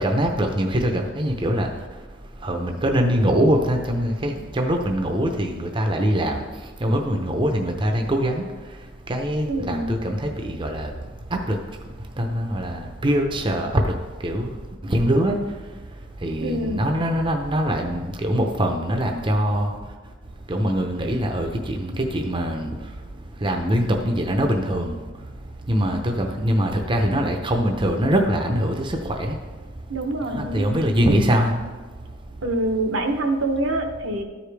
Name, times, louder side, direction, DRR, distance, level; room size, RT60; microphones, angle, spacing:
voice 1, 0.0-1.7 2.4-6.5 6.8-8.4 9.1-10.9 11.3-11.6 12.2-13.9 14.2-14.5 14.8-15.4 16.2-19.7 20.5-22.7 23.4-25.0 25.7-29.4 30.3-31.6, equal, 25° right, 3 dB, 0.6 m, -23 dB
voice 2, 9.5-9.9 16.4-16.8 29.9-30.8 32.4-34.2, right 2 dB, 70° right, 5 dB, 0.9 m, -25 dB
13.0 x 4.9 x 3.4 m, 1.3 s
head